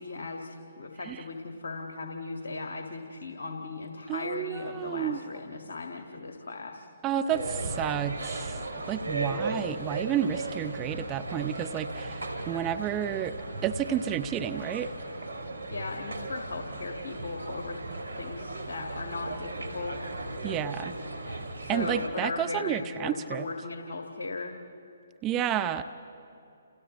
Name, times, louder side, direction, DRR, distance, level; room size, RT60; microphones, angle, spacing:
voice 1, 0.0-6.9 15.7-17.8 18.2-20.0 21.6-24.5, left 3 dB, 70° left, 3 dB, 1.9 m, -37 dB
voice 2, 4.1-5.2 7.0-8.6 8.9-13.4 13.6-14.9 20.4-20.9 21.3-21.4 21.7-23.5 25.2-25.8, right 10 dB, 20° right, 9 dB, 0.7 m, -31 dB
sound 1, 7.3-22.1, right 2 dB, 80° right, 2.8 m, -36 dB
29.5 x 29.5 x 3.2 m, 2.7 s
figure-of-eight pair, 135°, 0 cm